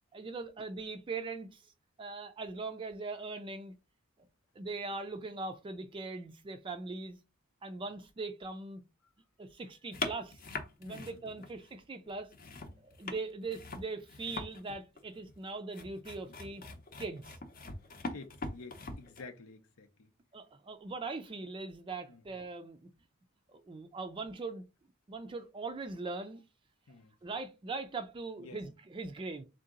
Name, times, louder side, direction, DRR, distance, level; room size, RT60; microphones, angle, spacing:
voice 1, 0.1-1.7 2.0-3.7 4.6-7.2 7.6-8.8 9.4-10.4 10.8-12.3 12.8-16.6 17.0-17.4 20.3-22.9 23.5-24.6 25.1-26.4 27.2-29.4, right 3 dB, 25° right, 0.3 m, -41 dB
sound 1, 9.9-11.7 12.1-19.2, left 3 dB, 40° left, 0.7 m, -42 dB
voice 2, 10.8-11.5 12.6-12.9 18.1-20.1 22.1-22.2 26.9-27.2 28.4-28.6, left 3 dB, 90° left, 0.7 m, -51 dB
3.7 x 2.8 x 3.7 m
head